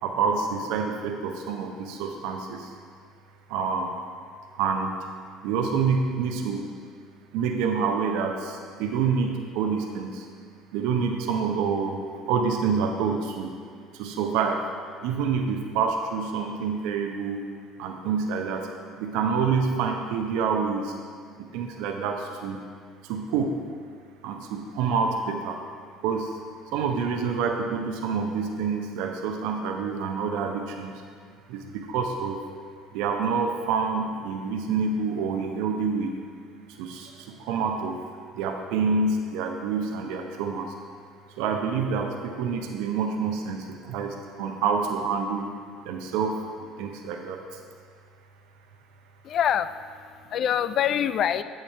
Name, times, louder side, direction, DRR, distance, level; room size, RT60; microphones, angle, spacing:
voice 1, 0.0-2.7 3.5-3.9 4.5-5.1 5.4-6.7 7.3-10.3 10.7-13.5 13.9-14.7 15.0-17.4 17.8-18.7 19.0-20.9 21.4-22.6 23.0-23.6 24.2-25.6 26.0-26.3 26.7-31.0 31.5-32.4 32.9-36.1 36.8-38.0 38.3-40.7 41.4-45.5 45.8-47.6, right 5 dB, 70° right, 3 dB, 0.6 m, -27 dB
voice 2, 49.2-51.4, left 9 dB, 55° left, 13 dB, 0.3 m, -25 dB
8.9 x 7.1 x 3.3 m, 2.1 s
hypercardioid pair, 60°, 0 cm